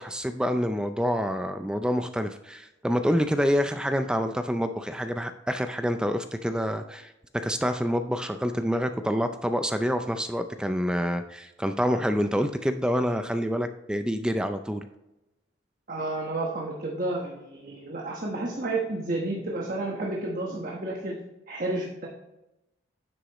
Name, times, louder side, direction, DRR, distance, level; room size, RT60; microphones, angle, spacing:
voice 1, 0.0-7.1 7.4-14.9, equal, 5° right, 8 dB, 0.4 m, -27 dB
voice 2, 15.9-21.2 21.5-22.1, right 2 dB, 40° right, -2 dB, 1.2 m, -31 dB
9.9 x 8.1 x 3.0 m, 0.95 s
head